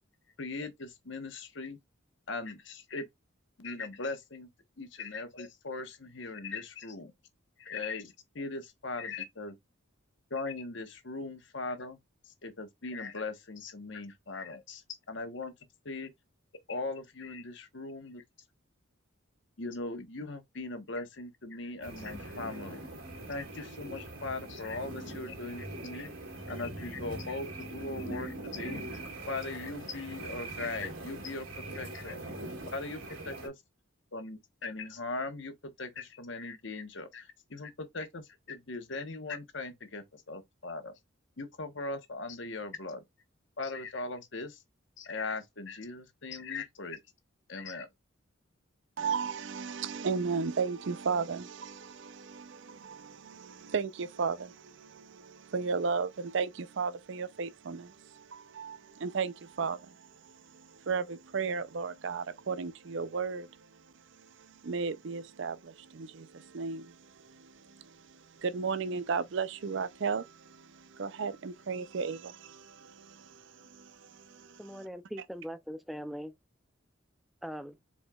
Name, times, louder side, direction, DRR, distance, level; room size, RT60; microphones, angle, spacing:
voice 1, 0.4-1.8 2.3-3.1 3.6-4.5 4.8-7.1 7.6-9.5 10.3-12.0 12.2-15.5 15.8-16.1 16.7-18.2 19.6-22.8 23.3-26.1 26.5-32.2 32.7-33.6 34.1-40.9 41.4-43.0 43.6-44.6 45.0-47.0 47.5-47.9, left 3 dB, 60° left, 1.1 m, -39 dB
sound 1, 21.8-33.5, right 1 dB, 80° right, 2.3 m, -42 dB
voice 2, 49.0-63.8 64.2-74.9, right 5 dB, 60° right, 0.5 m, -35 dB
voice 3, 74.6-76.3 77.4-77.8, equal, ahead, 0.4 m, -41 dB
4.8 x 4.2 x 2.3 m
head